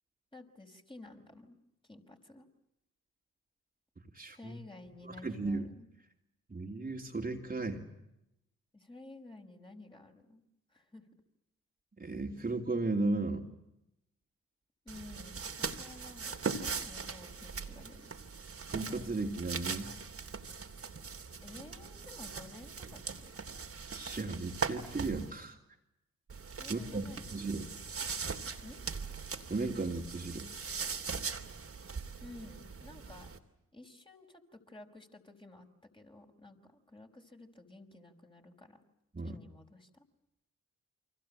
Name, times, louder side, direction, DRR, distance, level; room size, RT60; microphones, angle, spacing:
voice 1, 0.3-1.6 1.8-2.5 4.3-5.9 8.7-10.4 10.7-11.0 14.9-18.0 21.4-23.3 26.6-27.3 28.6-28.8 32.2-33.3 33.7-35.7 35.9-38.8 39.2-40.0, left 2 dB, 15° left, 3 dB, 5.5 m, -53 dB
voice 2, 4.1-4.6 5.0-5.7 6.5-7.9 12.0-13.5 18.7-19.9 23.9-25.6 26.7-27.7 29.5-30.5 39.1-39.4, right 3 dB, 25° right, 2 dB, 3.3 m, -35 dB
sound 1, 14.9-25.3 26.3-33.4, right 5 dB, 40° right, 3.0 m, -40 dB
29.5 x 24.5 x 7.7 m, 0.86 s
hypercardioid pair, 45°, 33 cm